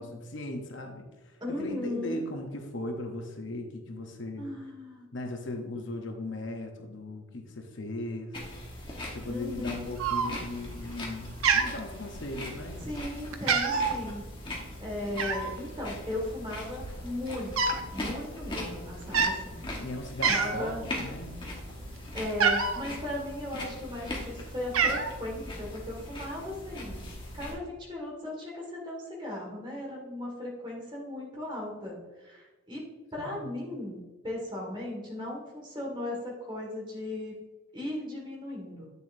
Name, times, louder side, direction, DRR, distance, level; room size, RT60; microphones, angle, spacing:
voice 1, 0.0-4.5 5.1-8.4 9.1-12.9 19.8-21.4 33.2-33.3, left 1 dB, 60° left, 4 dB, 0.8 m, -38 dB
voice 2, 1.4-2.2 4.4-5.1 9.3-9.9 12.8-19.6 20.3-20.8 22.1-27.1 27.3-32.8 33.1-37.3 37.7-38.9, left 1 dB, 20° right, -2 dB, 1.8 m, -37 dB
sound 1, 8.3-27.5, left 1 dB, 25° left, 1.3 m, -40 dB
Cat, 10.0-10.6 11.0-11.2 11.4-12.5 12.9-13.1 13.3-14.0 15.2-15.6 16.4-16.5 16.7-17.9 18.2-18.4 19.0-19.4 19.8-19.9 20.2-20.7 21.1-22.8 23.6-24.2 24.5-25.1, right 5 dB, 80° right, 0.7 m, -27 dB
8.5 x 6.8 x 2.6 m, 1.2 s
head